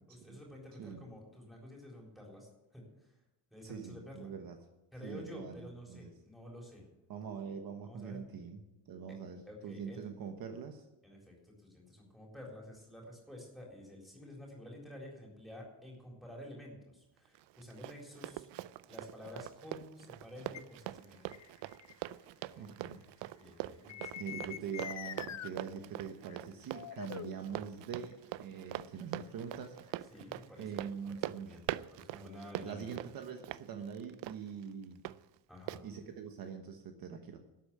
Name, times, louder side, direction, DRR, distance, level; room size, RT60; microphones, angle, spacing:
voice 1, 0.1-3.2 3.5-4.3 4.9-6.9 7.8-8.2 9.1-9.2 9.5-10.0 11.0-18.5 18.8-21.3 22.6-22.7 23.3-24.5 26.5-26.6 30.1-31.6 31.9-33.0 35.5-35.9, left 1 dB, ahead, -2 dB, 4.1 m, -50 dB
voice 2, 3.6-4.6 5.0-6.1 7.1-10.8 22.6-23.0 24.1-30.0 30.6-31.5 32.6-35.0 35.8-37.4, right 6 dB, 55° right, 5 dB, 1.2 m, -44 dB
Run, 17.3-35.2 35.7-35.8, right 15 dB, 80° right, 0.6 m, -43 dB
sound 1, 20.5-20.6 21.3-21.9 23.9-25.5 26.3-26.4 26.7-28.1 29.3-30.6, left 10 dB, 40° left, 0.6 m, -44 dB
12.5 x 8.5 x 8.4 m, 0.95 s
cardioid pair, 165°, 43 cm